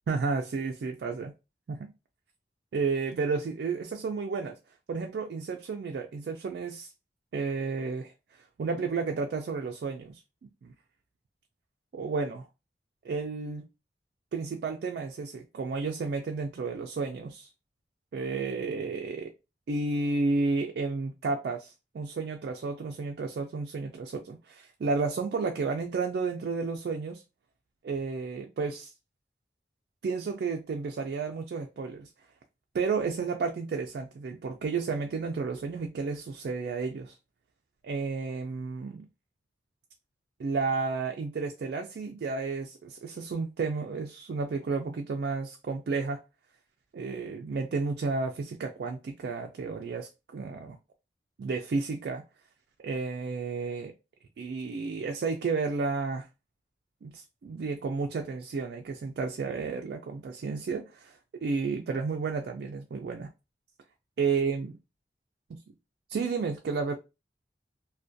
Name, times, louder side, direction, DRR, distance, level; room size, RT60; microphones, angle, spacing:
voice 1, 0.1-1.3 1.7-1.9 2.7-4.6 4.9-6.9 7.3-8.1 8.6-10.2 10.6-10.7 11.9-12.5 13.0-13.7 14.3-17.5 18.1-19.3 19.7-27.2 27.8-28.9 30.0-32.1 32.7-37.1 37.8-39.1 40.4-46.2 46.9-50.8 51.4-52.2 52.8-53.9 54.4-56.3 57.0-63.3 64.2-64.7 66.1-66.9, right 4 dB, 65° right, 0.3 m, -32 dB
2.4 x 2.1 x 2.5 m
head